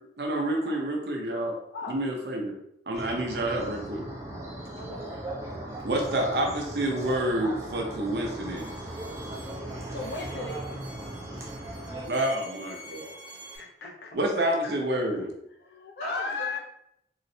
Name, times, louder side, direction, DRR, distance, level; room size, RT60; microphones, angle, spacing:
voice 1, 0.2-1.5 1.9-2.5 2.9-4.0 5.8-8.7 12.1-13.1 14.1-15.3, right 1 dB, 65° right, 1 dB, 0.6 m, -28 dB
sound 1, 2.9-12.0, right 1 dB, 15° right, 0.6 m, -38 dB
Bowed string instrument, 8.6-13.6, right 1 dB, 85° right, 1.1 m, -47 dB
voice 2, 9.9-10.6 13.5-14.1 14.4-15.2 15.6-16.6, left 4 dB, 65° left, 3 dB, 0.4 m, -37 dB
voice 3, 10.7-11.9 16.0-16.6, left 1 dB, 40° left, -4 dB, 0.9 m, -42 dB
3.9 x 2.0 x 2.6 m, 0.75 s
head